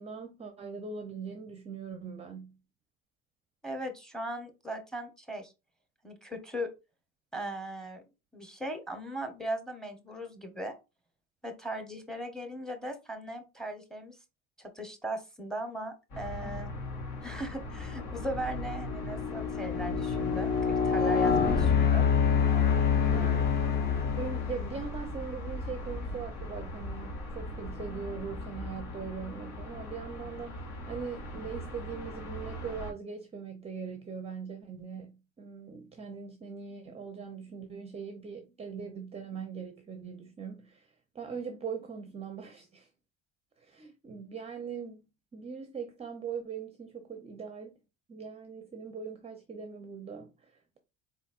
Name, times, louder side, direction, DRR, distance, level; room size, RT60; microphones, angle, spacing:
voice 1, 0.0-2.6 16.4-16.6 22.9-23.8 24.2-42.9 43.6-47.8 48.1-50.8, right 6 dB, 20° right, 0.6 m, -41 dB
voice 2, 3.6-5.5 6.0-6.7 7.3-8.0 8.3-10.8 11.4-14.2 14.6-16.7 17.2-22.1, right 1 dB, ahead, 0.9 m, -38 dB
sound 1, 16.1-32.9, left 1 dB, 65° left, 2.4 m, -40 dB
sound 2, 17.0-17.4 17.9-24.8, left 6 dB, 30° left, 0.7 m, -27 dB
4.1 x 4.1 x 2.4 m
cardioid pair, 125°, 33 cm